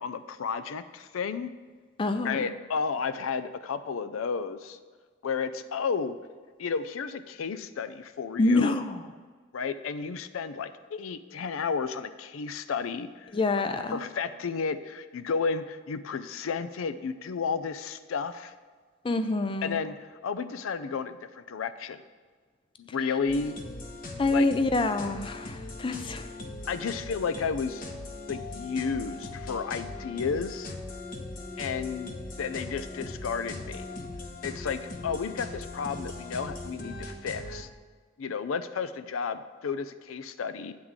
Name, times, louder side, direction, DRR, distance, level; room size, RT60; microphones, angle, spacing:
voice 1, 0.0-1.5 2.2-4.8 5.2-6.2 6.6-8.7 9.5-13.3 13.9-18.5 19.6-20.0 20.2-22.0 22.8-23.6 24.3-24.5 26.7-27.8 28.3-30.7 31.6-33.9 34.4-37.7 38.2-40.7, left 5 dB, 90° left, 12 dB, 0.4 m, -32 dB
voice 2, 2.0-2.5 8.4-9.0 13.3-14.0 19.0-19.8 22.9-23.2 24.2-26.3, left 2 dB, 25° left, 9 dB, 0.4 m, -27 dB
sound 1, 23.3-37.6, left 2 dB, 45° left, 0.8 m, -40 dB
9.6 x 3.7 x 7.1 m, 1.5 s
head